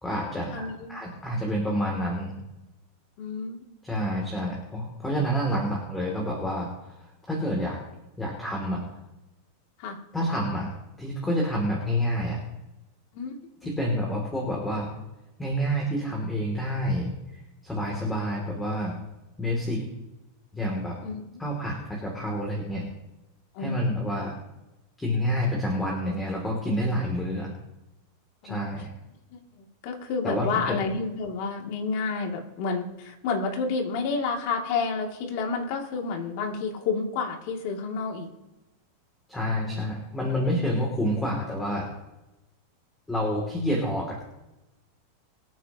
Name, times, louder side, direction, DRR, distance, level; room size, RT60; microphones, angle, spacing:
voice 1, 0.0-2.3 3.9-7.0 7.3-7.8 8.2-8.8 10.1-10.7 11.0-12.4 13.6-14.9 15.4-17.1 17.6-19.0 19.4-19.8 20.5-21.0 21.4-21.8 22.0-22.8 23.6-24.4 25.0-27.5 28.4-28.9 30.2-30.8 39.3-41.9 43.1-44.3, equal, 10° left, -1 dB, 2.9 m, -28 dB
voice 2, 0.5-1.0 3.2-3.6 9.8-10.0 13.1-13.4 21.0-21.4 23.5-23.9 28.4-28.7 29.3-38.3, left 4 dB, 55° left, 1 dB, 2.7 m, -30 dB
24.5 x 9.1 x 3.0 m, 0.97 s
supercardioid pair, 145°, 0 cm